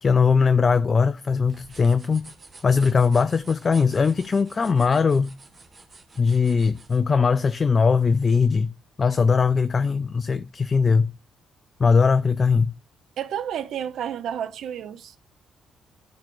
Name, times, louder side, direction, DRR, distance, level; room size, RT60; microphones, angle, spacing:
voice 1, 0.0-2.3 2.6-5.4 6.2-8.7 9.0-11.1 11.8-12.7, left 5 dB, 40° left, 0.4 m, -20 dB
sound 1, 1.4-7.0, right 3 dB, 35° right, 1.3 m, -49 dB
voice 2, 13.2-15.2, right 9 dB, 65° right, 0.6 m, -31 dB
11.5 x 4.4 x 2.5 m
hypercardioid pair, 45°, 0 cm